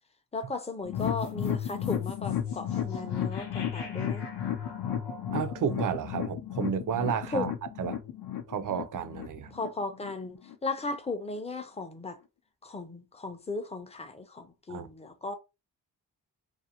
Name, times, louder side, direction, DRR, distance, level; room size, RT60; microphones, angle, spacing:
voice 1, 0.3-4.3 7.3-7.5 9.5-12.2 12.6-15.4, left 3 dB, 15° left, 0.4 m, -36 dB
sound 1, 0.8-10.1 10.4-10.5 10.9-11.0, left 10 dB, 65° left, 0.6 m, -33 dB
sound 2, 1.0-7.3, equal, 90° left, 0.9 m, -48 dB
voice 2, 5.3-7.5 7.8-8.0 8.5-9.5 14.7-14.9, right 7 dB, 50° right, 0.4 m, -31 dB
2.5 x 2.0 x 2.8 m
cardioid pair, 85°, 40 cm